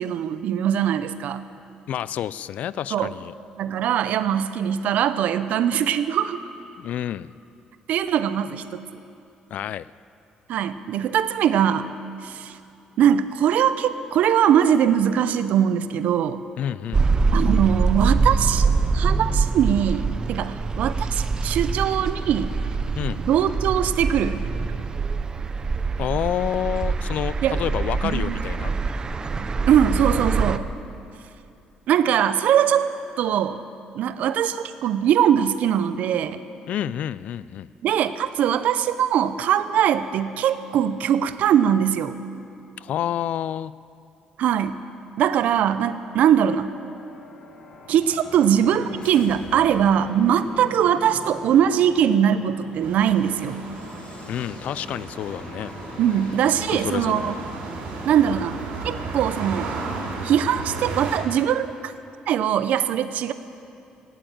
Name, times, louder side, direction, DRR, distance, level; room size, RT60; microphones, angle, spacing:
voice 1, 0.0-1.4 2.9-3.1 3.6-6.4 7.9-8.8 10.5-11.8 12.2-12.6 13.0-16.4 17.3-18.7 18.9-22.6 23.2-24.5 27.4-27.6 28.0-28.3 29.7-30.7 31.9-32.9 33.2-33.6 34.0-36.4 37.8-42.2 44.4-44.8 45.2-46.7 47.9-53.6 56.0-57.3 58.1-58.6 58.8-59.7 60.2-61.9 62.3-63.3, right 9 dB, 70° right, 12 dB, 0.6 m, -21 dB
voice 2, 1.9-3.3 6.8-7.3 9.5-9.9 16.6-17.1 23.0-23.2 26.0-28.7 36.7-37.7 42.8-43.7 54.3-55.7 56.7-57.4, left 10 dB, 65° left, 18 dB, 0.4 m, -29 dB
sound 1, 16.9-30.6, right 4 dB, 30° right, 0.6 m, -24 dB
sound 2, 46.6-60.4, left 3 dB, 45° left, 1.9 m, -43 dB
sound 3, 52.8-61.2, right 3 dB, 85° right, 2.9 m, -34 dB
16.0 x 10.0 x 8.8 m, 2.6 s
cardioid pair, 110°, 3 cm